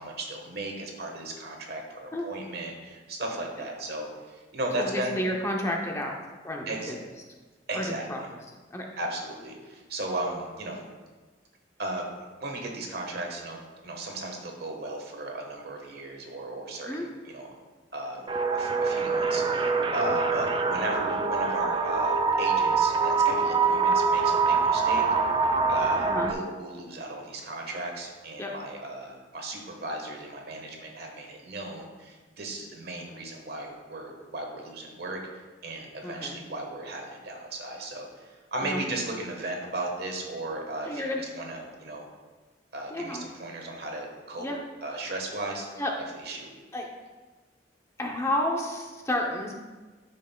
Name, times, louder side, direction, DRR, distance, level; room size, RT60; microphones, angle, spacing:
voice 1, 0.0-5.2 6.7-6.9 7.7-8.1 9.0-10.8 11.8-12.1 12.4-13.6 13.8-17.5 17.9-18.2 18.5-25.4 25.7-35.2 35.6-42.1 42.7-44.5 44.8-45.6 46.1-46.5, right 2 dB, 60° right, 1 dB, 1.3 m, -36 dB
voice 2, 4.8-6.1 6.4-7.0 7.7-8.2 8.7-8.9 16.9-17.0 26.1-26.3 28.4-28.5 36.0-36.4 38.6-38.8 40.8-41.2 42.9-43.2 44.4-44.6 45.8-45.9 46.7-46.9 48.0-49.5, left 1 dB, 15° left, 0 dB, 0.7 m, -30 dB
sound 1, 18.3-26.3, right 4 dB, 25° right, 0.4 m, -24 dB
11.5 x 5.4 x 2.2 m, 1.3 s
head